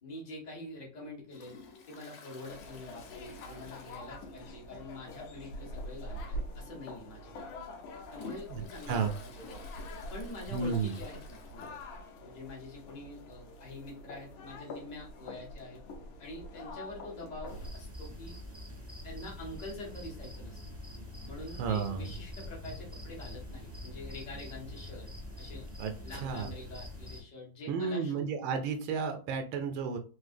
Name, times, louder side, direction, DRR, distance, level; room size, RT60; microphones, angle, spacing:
voice 1, 0.0-1.6 1.9-7.4 8.1-9.5 10.1-11.8 12.2-15.8 16.2-18.4 19.0-20.6 21.3-25.1 25.4-25.7 26.0-28.2, left 2 dB, 60° left, -3 dB, 0.4 m, -46 dB
Toilet flush, 1.3-4.7 5.0-5.1 5.5-5.6 6.5-6.6 7.1-12.0 12.4-12.5 12.6-12.7 13.8-13.9, left 6 dB, 90° left, 1.7 m, -53 dB
sound 1, 2.4-17.7, left 1 dB, 75° left, 1.5 m, -45 dB
voice 2, 10.5-11.0 21.6-22.1 25.8-25.9 26.2-26.5 27.7-30.0, right 5 dB, 75° right, 6 dB, 1.3 m, -32 dB
sound 2, 17.4-27.2, left 1 dB, 15° right, 0.5 m, -44 dB
3.7 x 2.7 x 2.5 m, 0.38 s
omnidirectional pair, 2.4 m